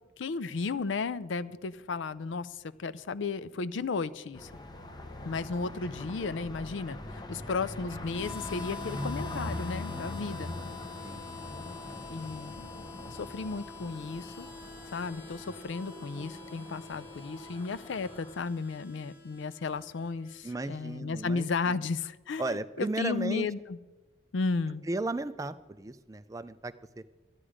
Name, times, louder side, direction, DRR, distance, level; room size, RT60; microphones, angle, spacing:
voice 1, 0.2-4.5 5.2-10.5 12.1-14.5 14.9-23.8 24.3-24.8, left 4 dB, 75° left, 16 dB, 0.5 m, -34 dB
sound 1, 4.3-18.4, left 1 dB, 20° left, 0.8 m, -42 dB
Harmonica, 8.1-20.7, left 4 dB, 55° left, 1.8 m, -47 dB
voice 2, 20.4-21.8 22.4-23.5 24.9-27.0, right 2 dB, 15° right, 12 dB, 0.3 m, -35 dB
13.0 x 10.0 x 5.0 m, 1.2 s
head